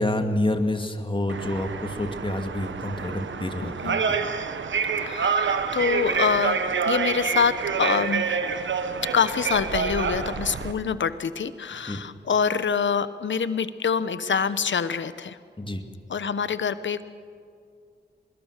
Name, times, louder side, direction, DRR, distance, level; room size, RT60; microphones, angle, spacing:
voice 1, 0.0-4.2 11.9-12.0 15.6-15.8, left 1 dB, 25° left, 6 dB, 2.4 m, -28 dB
sound 1, 1.3-10.7, right 5 dB, 85° right, 1.2 m, -27 dB
voice 2, 5.0-8.4 9.0-15.4 16.1-17.0, left 6 dB, 80° left, 13 dB, 1.0 m, -26 dB
24.0 x 21.0 x 6.7 m, 2.3 s
cardioid pair, 40°, 19 cm